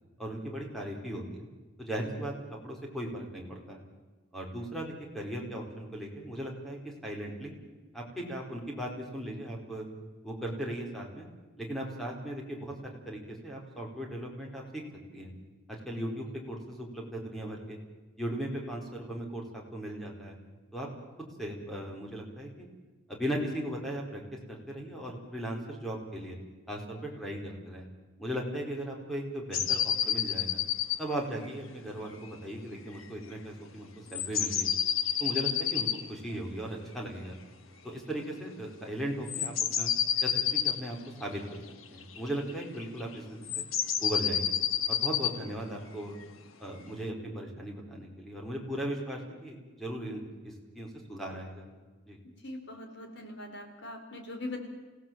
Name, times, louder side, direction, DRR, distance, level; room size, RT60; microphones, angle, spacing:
voice 1, 0.2-1.5 1.8-2.3 2.6-3.8 4.3-7.5 7.9-9.8 10.2-11.3 11.6-14.8 15.1-15.3 15.7-17.8 18.2-20.4 20.7-20.9 21.4-22.7 23.1-24.2 24.5-26.4 26.7-27.9 28.2-30.6 31.0-34.7 35.2-37.3 37.8-39.9 40.2-41.6 41.9-43.5 44.0-44.6 44.9-46.2 46.6-51.7 52.1-52.2, right 1 dB, ahead, 0 dB, 4.5 m, -37 dB
sound 1, 29.5-31.0 31.4-31.5 33.0-33.1 34.1-36.0 39.3-40.8 42.0-43.0 43.4-45.4, left 9 dB, 85° left, 1.6 m, -29 dB
voice 2, 52.4-54.7, left 2 dB, 60° left, 4 dB, 4.3 m, -41 dB
28.5 x 16.5 x 7.7 m, 1.3 s
head